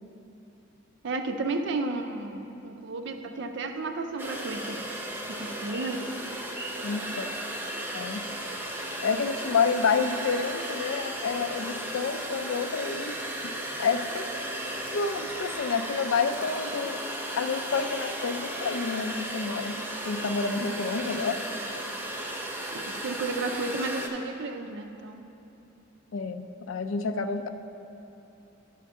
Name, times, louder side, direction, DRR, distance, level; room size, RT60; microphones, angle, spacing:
voice 1, 1.0-4.9 5.3-6.1 22.7-25.3, right 3 dB, 60° right, 6 dB, 0.5 m, -33 dB
sound 1, 4.2-24.1, right 1 dB, 10° right, 0.6 m, -35 dB
voice 2, 6.8-7.3 7.9-8.2 9.0-13.2 13.8-14.3 14.9-17.0 17.3-21.4 26.1-27.5, left 5 dB, 80° left, 8 dB, 0.4 m, -29 dB
10.5 x 5.9 x 3.6 m, 3.0 s
head